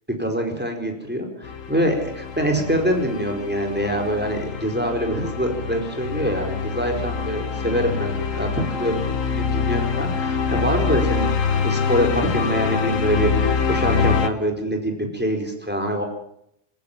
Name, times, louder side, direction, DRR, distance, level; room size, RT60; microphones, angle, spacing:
voice 1, 0.2-16.0, right 1 dB, 10° right, 3 dB, 4.8 m, -25 dB
sound 1, 1.4-14.3, left 6 dB, 85° left, 1.7 m, -25 dB
27.0 x 15.0 x 7.5 m, 0.74 s
omnidirectional pair, 1.3 m